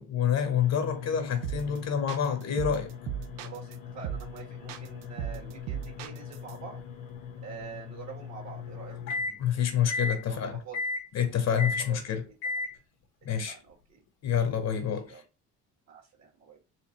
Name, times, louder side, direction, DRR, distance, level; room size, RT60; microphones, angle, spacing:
voice 1, 0.0-2.9 9.4-10.6 11.1-12.2 13.2-13.5 14.2-15.1, left 8 dB, 55° left, 0.9 m, -27 dB
sound 1, 0.6-9.4 9.9-10.2 10.7-11.1 11.6-11.9 12.4-12.7, left 4 dB, 90° left, 1.2 m, -38 dB
sound 2, 1.4-1.8 2.1-3.7 4.0-4.4 4.7-6.5, right 11 dB, 90° right, 0.5 m, -36 dB
voice 2, 3.4-6.8 7.4-9.0 10.2-10.8 11.8-12.0 12.3-12.4 13.5-14.0 14.7-15.2 15.9-16.7, right 6 dB, 60° right, 1.8 m, -46 dB
4.3 x 2.6 x 2.9 m
cardioid pair, 115°, 32 cm